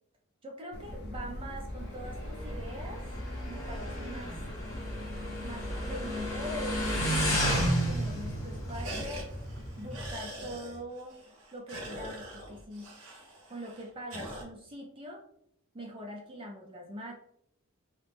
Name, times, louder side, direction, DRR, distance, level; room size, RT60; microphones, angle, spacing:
voice 1, 0.4-3.0 3.5-4.4 5.4-9.3 9.8-11.2 11.5-12.9 13.5-15.2 15.7-17.1, equal, 25° right, 0 dB, 0.4 m, -43 dB
sound 1, 0.7-10.3, left 1 dB, 50° left, 0.5 m, -41 dB
sound 2, 1.5-6.8 7.1-7.2 7.5-8.0 8.3-14.4, equal, 80° right, 0.9 m, -46 dB
Motorcycle, 1.8-10.1, equal, 15° left, 0.9 m, -33 dB
2.7 x 2.0 x 3.3 m, 0.70 s
head